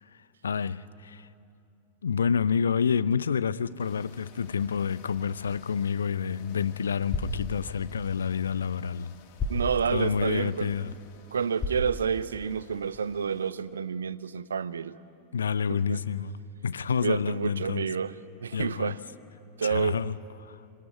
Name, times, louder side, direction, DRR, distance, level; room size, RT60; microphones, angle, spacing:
voice 1, 0.4-1.3 2.0-9.1 9.9-10.9 15.3-16.4 16.6-17.9 18.5-19.0 19.6-20.6, left 6 dB, 70° left, 0.7 m, -28 dB
sound 1, 3.8-13.5, left 8 dB, 45° left, 2.4 m, -55 dB
sound 2, 5.9-12.8, left 2 dB, 25° left, 5.3 m, -38 dB
voice 2, 9.5-10.7 11.3-15.0 15.7-16.0 17.0-18.1 18.4-19.0 19.6-20.0, right 6 dB, 70° right, 0.8 m, -29 dB
26.5 x 23.0 x 9.6 m
figure-of-eight pair, 90°, 0 cm